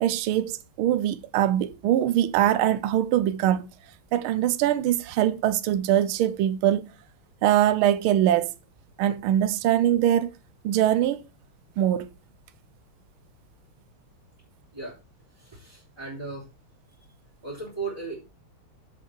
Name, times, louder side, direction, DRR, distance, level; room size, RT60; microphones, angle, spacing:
voice 1, 0.0-3.7 4.1-6.9 7.4-8.5 9.0-10.3 10.6-11.2 11.8-12.1, right 11 dB, 80° right, 1.6 m, -22 dB
voice 2, 15.3-16.5 17.4-18.2, right 4 dB, 10° right, 4.2 m, -36 dB
7.8 x 7.7 x 4.6 m
omnidirectional pair, 2.3 m